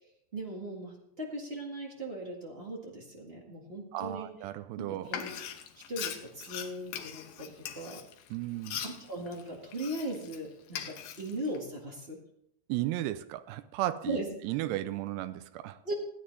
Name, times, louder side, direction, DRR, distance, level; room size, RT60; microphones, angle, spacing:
voice 1, 0.3-4.3 4.8-5.3 5.9-8.0 8.8-12.2 14.0-14.3 15.8-15.9, right 1 dB, 45° right, -2 dB, 0.7 m, -38 dB
voice 2, 3.9-5.1 8.3-8.8 12.7-14.2 14.4-15.8, right 15 dB, 85° right, 12 dB, 2.8 m, -34 dB
Frying (food), 5.1-10.4 10.7-11.6, left 9 dB, 75° left, 2.6 m, -41 dB
16.5 x 9.6 x 4.0 m, 0.73 s
omnidirectional pair, 4.7 m